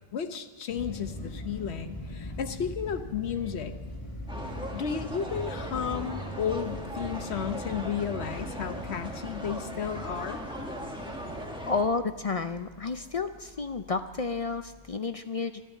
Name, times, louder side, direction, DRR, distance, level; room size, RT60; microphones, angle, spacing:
voice 1, 0.1-3.7 4.7-10.4, left 7 dB, 80° left, 7 dB, 1.2 m, -33 dB
sound 1, 0.7-15.0, left 1 dB, 30° left, 2.1 m, -42 dB
sound 2, 4.3-11.8, equal, 5° right, 1.7 m, -38 dB
voice 2, 11.7-15.6, left 4 dB, 50° left, 9 dB, 0.4 m, -31 dB
12.5 x 12.0 x 8.2 m, 1.3 s
omnidirectional pair, 1.1 m